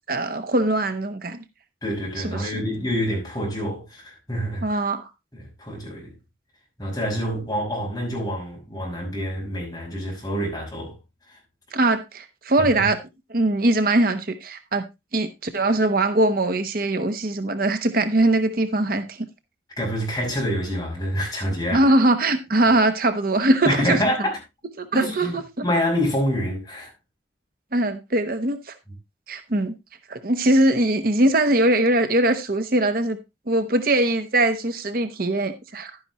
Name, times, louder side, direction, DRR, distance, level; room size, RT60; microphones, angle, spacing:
voice 1, 0.1-1.4 2.2-2.5 4.6-5.1 11.7-13.0 13.3-14.8 15.1-19.2 21.7-24.0 24.8-25.4 27.7-28.7 29.3-29.7 30.1-33.2 33.5-35.9, right 1 dB, 50° right, 1.0 m, -21 dB
voice 2, 1.8-4.8 5.3-6.1 6.8-11.0 11.3-11.4 12.6-12.9 19.8-21.9 23.7-24.2 24.9-25.3 25.6-26.9, equal, 20° left, 6.1 m, -27 dB
11.5 x 9.7 x 3.0 m
head